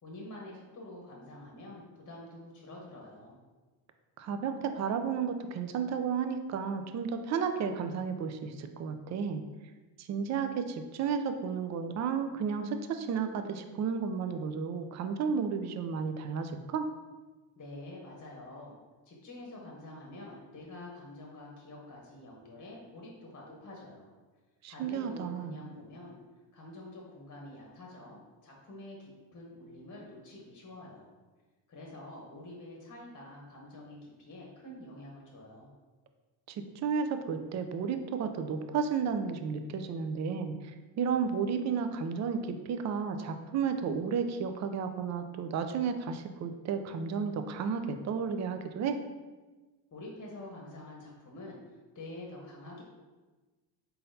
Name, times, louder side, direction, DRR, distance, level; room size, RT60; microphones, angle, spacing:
voice 1, 0.0-3.4 17.6-18.8 19.0-24.1 24.7-26.2 26.5-31.1 31.7-35.7 49.9-51.6 51.9-52.8, left 1 dB, 30° left, -2 dB, 0.9 m, -47 dB
voice 2, 4.2-9.4 10.0-16.9 24.6-25.6 36.5-40.5 41.0-49.0, right 6 dB, 40° right, 8 dB, 0.4 m, -32 dB
4.1 x 3.8 x 2.7 m, 1.3 s
cardioid pair, 95°, 50 cm